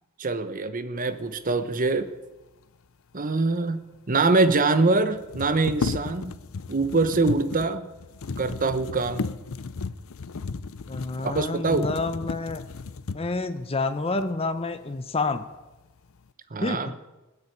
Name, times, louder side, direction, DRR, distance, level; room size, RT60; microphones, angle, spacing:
voice 1, 0.2-2.1 3.1-6.4 6.7-7.9 8.4-9.3 11.2-11.9 16.5-16.9, right 3 dB, 40° right, 11 dB, 0.9 m, -24 dB
sound 1, 3.7-3.8 3.9-4.0 5.1-13.5 14.2-14.3 14.7-15.4 15.7-16.3, left 4 dB, 65° left, 0.6 m, -34 dB
voice 2, 10.9-12.6 13.1-15.5 16.6-16.9, left 3 dB, 25° left, 9 dB, 0.7 m, -28 dB
20.0 x 6.9 x 8.6 m, 1.1 s
head